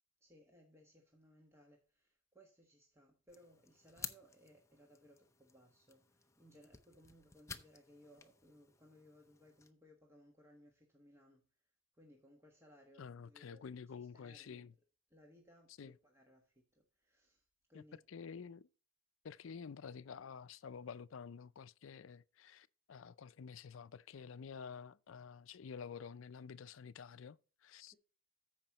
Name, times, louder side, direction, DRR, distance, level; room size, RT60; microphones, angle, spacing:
voice 1, 0.2-11.4 11.9-13.6 13.9-14.7 15.1-18.0, equal, 15° right, 1.4 m, -64 dB
sound 1, 3.3-9.7, left 5 dB, 15° left, 0.6 m, -53 dB
voice 2, 13.0-14.7 15.8-16.0 17.7-18.7 19.2-27.9, left 6 dB, 70° left, 0.4 m, -50 dB
14.5 x 5.1 x 2.9 m
head